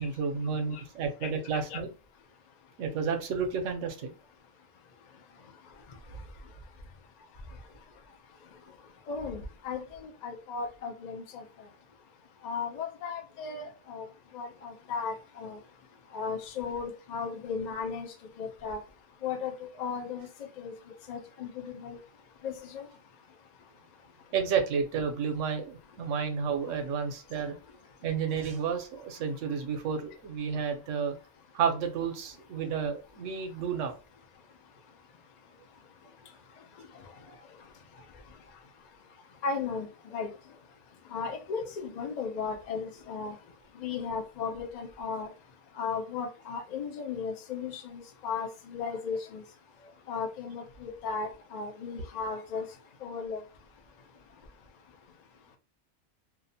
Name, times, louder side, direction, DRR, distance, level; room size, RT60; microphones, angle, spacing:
voice 1, 0.0-1.9 2.8-4.1 24.3-27.6 28.0-31.2 31.5-34.0, right 6 dB, 75° right, 1.0 m, -31 dB
voice 2, 9.1-11.4 12.4-14.1 14.3-15.6 16.1-18.8 19.2-20.3 20.6-20.7 21.1-22.0 22.4-22.9 39.4-40.3 41.1-43.3 43.8-45.3 45.8-49.4 50.1-52.7 53.0-53.4, left 5 dB, 65° left, 0.4 m, -36 dB
2.7 x 2.1 x 2.6 m
omnidirectional pair, 1.3 m